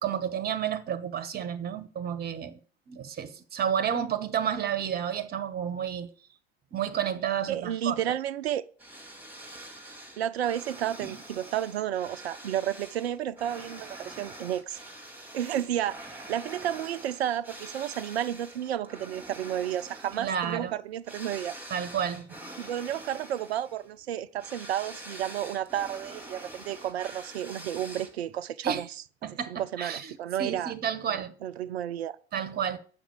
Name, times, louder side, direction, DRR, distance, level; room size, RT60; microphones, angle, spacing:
voice 1, 0.0-2.6 2.9-6.1 6.7-8.0 11.0-11.2 20.2-20.7 21.7-22.4 28.6-28.8 29.2-30.1 30.4-31.3 32.3-32.8, right 8 dB, 30° right, 1.2 m, -31 dB
voice 2, 7.5-8.6 10.2-14.8 15.3-21.5 22.6-28.9 29.5-30.7 31.1-32.2, right 11 dB, 70° right, 0.6 m, -32 dB
sound 1, 8.8-28.4, right 1 dB, 5° right, 2.3 m, -45 dB
9.0 x 6.0 x 6.9 m
figure-of-eight pair, 80°, 32 cm